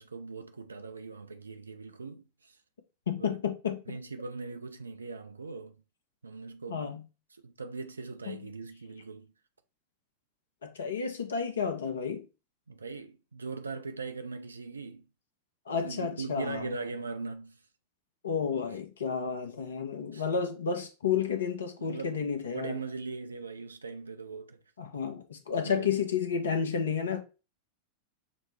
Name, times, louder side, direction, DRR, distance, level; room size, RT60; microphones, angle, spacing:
voice 1, 0.0-2.6 3.2-3.4 3.9-5.8 6.2-7.0 7.3-9.3 12.7-15.1 15.8-17.6 20.1-20.2 21.8-24.6 25.6-25.9, right 4 dB, 75° right, 0.5 m, -40 dB
voice 2, 3.1-3.9 6.7-7.0 8.3-8.4 10.6-12.2 15.7-16.7 18.2-22.8 24.8-27.2, left 6 dB, 65° left, 0.7 m, -31 dB
6.1 x 2.1 x 3.1 m
figure-of-eight pair, 90°, 0 cm